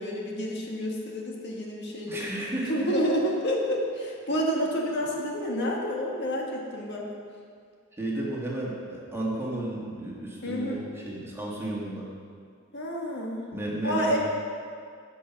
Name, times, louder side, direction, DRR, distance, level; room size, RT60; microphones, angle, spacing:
voice 1, 0.0-2.3 2.7-7.0 10.4-10.8 12.7-13.5 13.8-14.2, equal, 55° left, -1 dB, 1.6 m, -29 dB
voice 2, 2.1-2.9 8.0-12.1 13.5-14.2, right 1 dB, 10° right, -5 dB, 1.9 m, -33 dB
15.5 x 5.7 x 5.8 m, 2.2 s
head